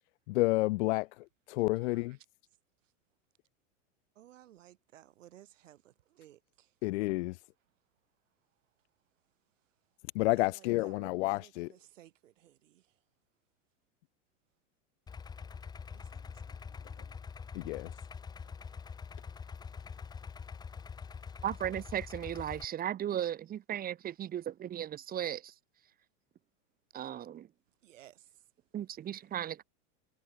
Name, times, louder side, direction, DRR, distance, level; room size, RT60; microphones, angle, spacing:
voice 1, 0.3-2.2 6.8-7.4 10.1-11.7 17.5-17.9, left 21 dB, 65° left, 0.6 m, -30 dB
voice 2, 1.8-2.2 2.8-2.9 4.1-6.8 9.6-9.7 10.4-13.0 15.9-17.2 18.4-18.8 20.6-20.7 21.0-21.2 27.8-28.5, right 13 dB, 85° right, 7.6 m, -59 dB
Idling, 15.1-22.6, left 6 dB, 10° left, 0.8 m, -45 dB
voice 3, 21.4-25.5 26.9-27.5 28.7-29.6, right 10 dB, 25° right, 1.5 m, -36 dB
supercardioid pair, 140°, 37 cm